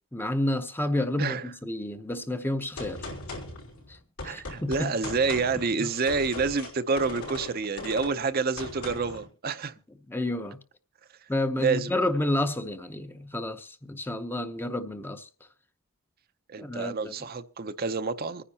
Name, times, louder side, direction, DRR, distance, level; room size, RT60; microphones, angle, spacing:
voice 1, 0.1-3.0 3.9-4.0 4.2-4.9 5.8-5.9 10.1-10.6 11.3-15.3 16.6-17.1, left 1 dB, 10° left, 0.7 m, -30 dB
voice 2, 1.2-1.5 4.2-9.7 11.6-11.9 16.5-18.4, right 4 dB, 45° right, 0.6 m, -28 dB
Gunshot gunfire, 2.8-9.3, left 2 dB, 85° left, 5.0 m, -39 dB
25.5 x 10.0 x 2.8 m
head